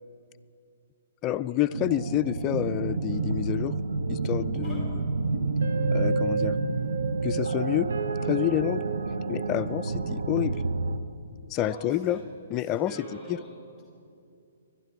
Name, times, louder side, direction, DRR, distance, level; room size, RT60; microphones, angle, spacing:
voice 1, 1.2-3.7 4.1-5.0 5.9-6.6 7.2-7.9 8.3-8.8 9.3-10.6 11.5-12.2 12.5-13.0 13.3-13.4, left 13 dB, 30° left, 12 dB, 0.4 m, -28 dB
sound 1, 1.7-11.0, right 3 dB, 75° right, 0.8 m, -28 dB
voice 2, 11.6-12.2 12.6-13.5, equal, 15° right, -4 dB, 2.7 m, -44 dB
21.0 x 12.0 x 4.7 m, 2.5 s
hypercardioid pair, 135°, 0 cm